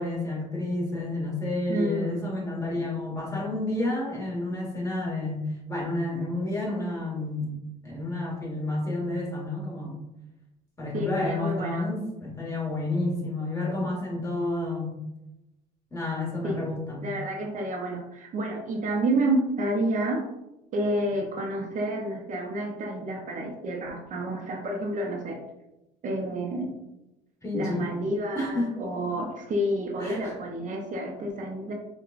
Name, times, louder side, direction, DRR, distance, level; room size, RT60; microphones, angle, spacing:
voice 1, 0.0-7.6 7.8-10.0 10.8-14.9 15.9-17.1 27.4-27.9 28.3-28.8 30.0-30.3, left 2 dB, 20° left, -4 dB, 1.4 m, -30 dB
voice 2, 1.7-2.2 10.9-11.9 16.4-16.6 17.0-20.2 20.7-25.4 26.0-26.7 27.5-31.7, right 1 dB, 50° right, 1 dB, 0.6 m, -29 dB
4.5 x 2.3 x 2.4 m, 0.93 s
cardioid pair, 110°, 17 cm